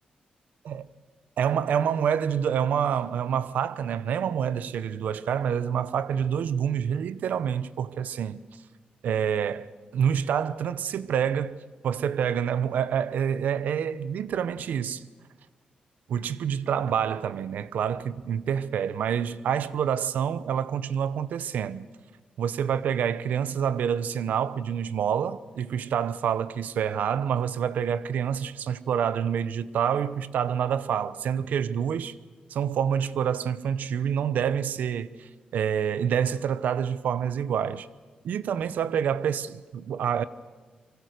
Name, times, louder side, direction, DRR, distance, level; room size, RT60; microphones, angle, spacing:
voice 1, 1.4-8.4 9.0-15.0 16.1-21.9 22.4-32.1 32.5-37.9 38.2-40.2, right 8 dB, 85° right, 0.8 m, -27 dB
25.5 x 24.0 x 6.6 m
cardioid pair, 105°, 3 cm